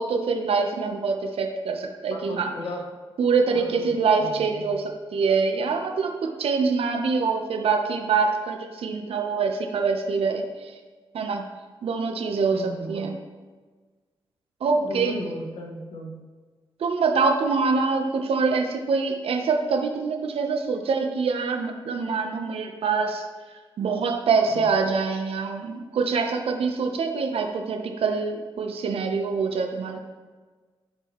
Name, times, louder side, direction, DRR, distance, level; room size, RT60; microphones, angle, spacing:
voice 1, 0.0-2.5 3.2-10.7 11.1-11.4 11.8-13.1 14.6-15.1 16.8-23.2 23.8-30.0, right 4 dB, 80° right, 4 dB, 0.9 m, -25 dB
voice 2, 2.1-2.8 3.5-4.8 12.5-13.1 14.6-16.2 24.5-24.7, left 1 dB, 70° left, 0 dB, 1.6 m, -36 dB
13.0 x 4.6 x 3.1 m, 1.4 s
cardioid pair, 70°, 10 cm